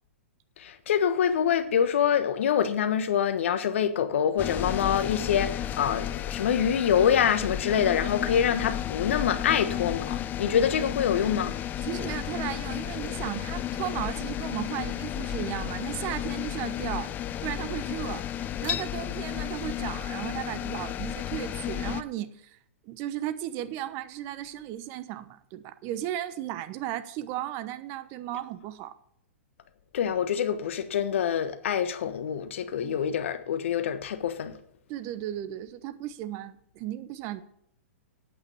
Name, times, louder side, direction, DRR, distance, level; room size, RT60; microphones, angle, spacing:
voice 1, 0.6-11.6 29.9-34.6, left 8 dB, 65° left, 1.3 m, -26 dB
sound 1, 4.4-22.0, left 11 dB, 25° left, 0.6 m, -33 dB
voice 2, 11.8-17.1 17.4-18.2 18.6-22.6 22.8-28.9 32.8-32.9 34.9-37.4, right 12 dB, 40° right, 1.0 m, -35 dB
8.8 x 8.6 x 6.9 m
hypercardioid pair, 115°, 7 cm